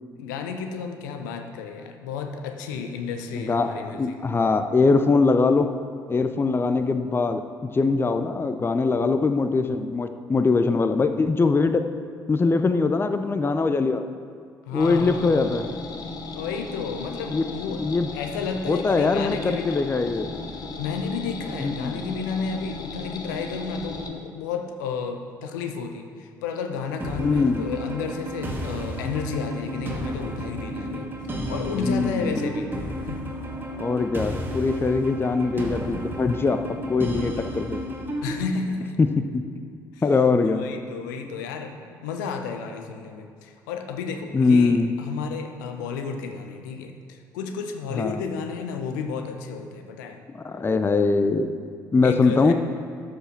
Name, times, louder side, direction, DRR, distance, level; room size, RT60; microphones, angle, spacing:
voice 1, 0.2-4.2 14.6-15.4 16.3-17.8 18.1-19.8 20.8-32.7 33.0-33.4 38.2-39.0 39.9-40.0 40.4-50.2 52.0-52.5, left 5 dB, 75° left, 6 dB, 0.8 m, -32 dB
voice 2, 3.3-5.7 6.1-11.9 12.3-14.0 14.7-15.7 17.3-18.1 18.7-20.3 21.6-22.0 27.2-27.7 30.7-30.9 31.8-32.5 33.8-37.8 39.0-39.4 40.0-40.6 44.3-44.9 47.9-48.2 50.4-51.6 51.9-52.5, left 4 dB, 20° left, 9 dB, 0.6 m, -22 dB
sound 1, 14.8-24.1, left 3 dB, 40° left, 1.2 m, -36 dB
sound 2, 27.0-38.4, equal, 20° right, 1.8 m, -32 dB
13.0 x 5.1 x 5.9 m, 2.3 s
figure-of-eight pair, 50°, 10 cm